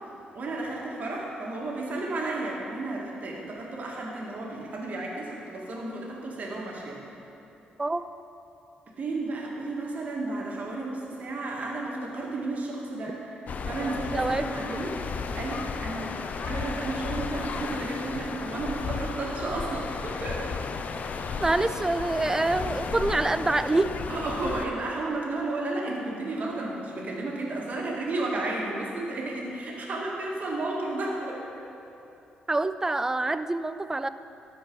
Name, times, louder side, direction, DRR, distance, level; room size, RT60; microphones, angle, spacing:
voice 1, 0.3-7.0 9.0-13.3 13.6-15.0 15.3-20.5 21.2-21.4 24.1-31.4, right 2 dB, 55° right, -2 dB, 2.0 m, -33 dB
sound 1, 13.5-24.7, left 5 dB, 55° left, 0.5 m, -34 dB
voice 2, 14.1-14.8 21.4-23.9 32.5-34.1, right 2 dB, 15° right, 12 dB, 0.4 m, -26 dB
13.5 x 5.1 x 4.7 m, 2.8 s
cardioid pair, 75°, 3 cm